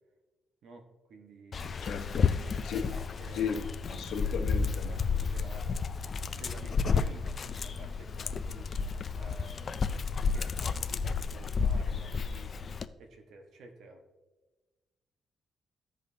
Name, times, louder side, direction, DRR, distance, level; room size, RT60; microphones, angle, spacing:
voice 1, 0.6-2.0 2.7-3.6 4.2-4.5 4.8-5.7 6.3-12.5 13.0-14.0, right 3 dB, 70° right, 4 dB, 1.3 m, -52 dB
Dog, 1.5-12.9, left 5 dB, 35° left, 0.3 m, -31 dB
voice 2, 1.8-2.3 2.6-2.9 3.3-3.6 3.9-4.9, left 6 dB, 85° left, 5 dB, 0.9 m, -35 dB
15.0 x 5.1 x 2.7 m, 1.2 s
cardioid pair, 165°, 0 cm